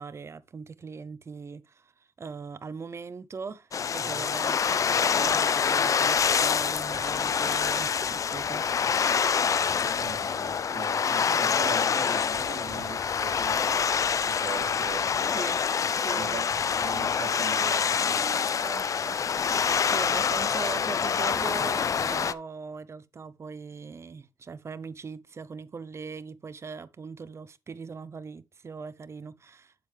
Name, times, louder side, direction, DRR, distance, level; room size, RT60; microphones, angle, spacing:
voice 1, 0.0-9.1 15.3-15.6 16.0-16.5 19.8-29.7, right 5 dB, 35° right, 0.6 m, -40 dB
sound 1, 3.7-22.3, left 6 dB, 45° left, 0.4 m, -26 dB
voice 2, 4.0-4.3 10.0-13.9 14.2-15.5 16.1-19.2, right 7 dB, 70° right, 1.3 m, -41 dB
7.7 x 7.2 x 3.3 m
wide cardioid pair, 115°, 8 cm